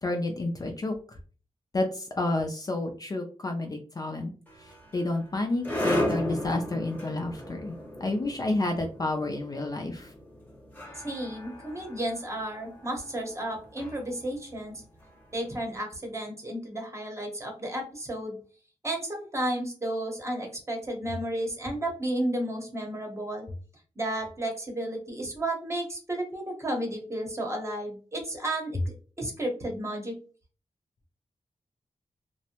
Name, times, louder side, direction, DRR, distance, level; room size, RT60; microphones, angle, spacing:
voice 1, 0.0-1.2 1.7-4.3 4.9-7.7 8.0-10.1, left 2 dB, 30° left, 3 dB, 0.4 m, -30 dB
sound 1, 4.5-15.6, left 1 dB, 15° left, 0.7 m, -36 dB
voice 2, 10.9-14.8 15.3-18.4 18.8-23.5 24.0-30.2, right 1 dB, 25° right, 1 dB, 0.8 m, -33 dB
2.6 x 2.1 x 2.8 m, 0.38 s
wide cardioid pair, 120°, 12 cm